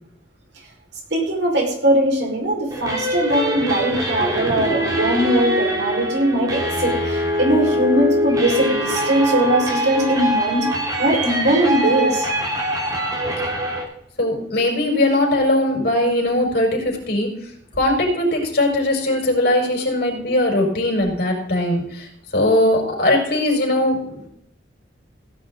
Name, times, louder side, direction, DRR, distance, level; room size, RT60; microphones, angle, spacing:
voice 1, 1.1-10.7 11.0-12.3, right 1 dB, 65° right, -1 dB, 5.0 m, -20 dB
sound 1, 2.7-13.8, equal, 20° right, 2.8 m, -23 dB
voice 2, 14.2-17.3 17.8-24.3, left 1 dB, 60° left, 0 dB, 5.1 m, -20 dB
17.0 x 10.5 x 3.9 m, 0.73 s
head